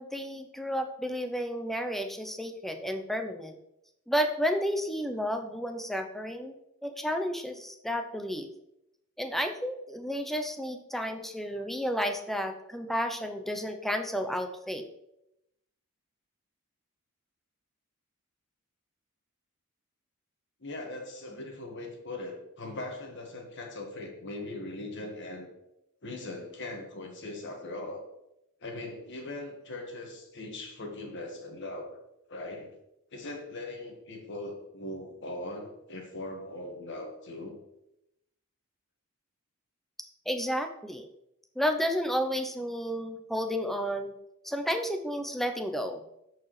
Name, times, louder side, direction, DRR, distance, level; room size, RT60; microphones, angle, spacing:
voice 1, 0.0-3.6 4.1-6.6 6.8-8.5 9.2-14.9 40.3-41.1 41.6-44.1 44.4-46.0, equal, ahead, 5 dB, 0.5 m, -32 dB
voice 2, 20.6-25.5 26.0-28.1 28.6-32.0 32.3-32.7 33.1-37.5, left 2 dB, 55° left, 2 dB, 1.5 m, -40 dB
13.5 x 4.7 x 3.2 m, 0.85 s
head